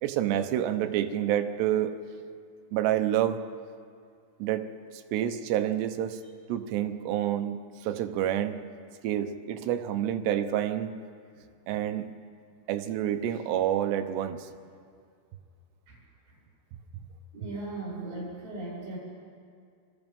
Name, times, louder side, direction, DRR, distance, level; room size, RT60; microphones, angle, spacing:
voice 1, 0.0-2.0 2.7-3.4 4.4-6.2 6.5-8.6 9.0-10.9 11.7-12.1 12.7-14.5, right 11 dB, 85° right, 8 dB, 3.1 m, -28 dB
voice 2, 17.3-19.0, right 2 dB, 60° right, -6 dB, 8.8 m, -37 dB
27.0 x 24.5 x 5.4 m, 2.3 s
omnidirectional pair, 4.8 m